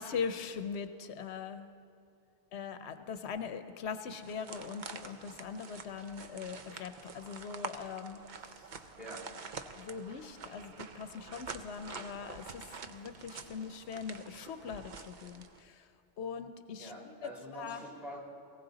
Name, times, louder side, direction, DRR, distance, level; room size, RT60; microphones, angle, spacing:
voice 1, 0.0-1.7 2.5-8.7 9.7-15.9 16.2-17.1 17.5-17.8, left 6 dB, 85° left, 10 dB, 1.0 m, -41 dB
sound 1, 4.1-15.6, right 5 dB, 50° right, 0.7 m, -47 dB
voice 2, 16.8-18.2, right 1 dB, ahead, -4 dB, 3.1 m, -46 dB
19.0 x 16.5 x 4.0 m, 2.5 s
omnidirectional pair, 1.1 m